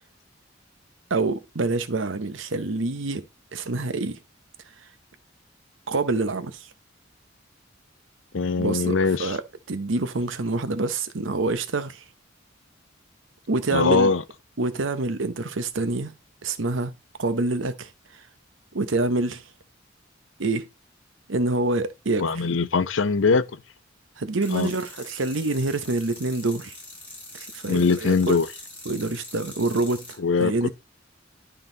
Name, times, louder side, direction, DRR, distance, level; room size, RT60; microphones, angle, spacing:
voice 1, 1.1-3.2 3.5-4.2 5.9-6.7 8.6-9.4 9.7-12.0 13.5-14.1 14.6-16.1 16.4-16.9 17.2-17.9 18.7-19.4 20.4-20.7 21.3-22.2 24.2-26.7 27.3-28.4 28.9-30.7, right 2 dB, 85° right, 0.9 m, -26 dB
voice 2, 8.3-9.4 13.7-14.2 22.2-23.6 24.5-24.7 27.7-28.5 30.2-30.7, left 4 dB, 80° left, 0.6 m, -22 dB
sound 1, 24.4-30.2, left 2 dB, 10° left, 5.4 m, -43 dB
11.0 x 4.0 x 3.9 m
head